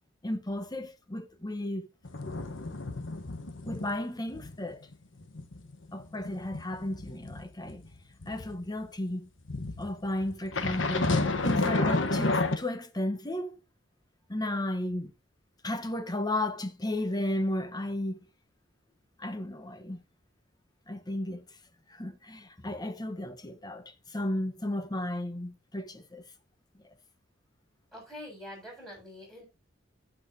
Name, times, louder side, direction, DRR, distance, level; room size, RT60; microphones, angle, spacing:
voice 1, 0.2-1.9 3.6-4.8 5.9-7.8 8.3-9.3 9.8-13.6 14.3-15.1 15.6-18.2 19.2-20.0 20.9-21.4 21.9-26.2, left 1 dB, 20° left, 1.1 m, -34 dB
sound 1, 2.1-4.0 4.3-4.6 4.9-8.5 9.5-12.6, left 2 dB, 70° left, 1.2 m, -30 dB
voice 2, 27.9-29.4, left 1 dB, ahead, 7.3 m, -45 dB
15.0 x 6.2 x 2.8 m
head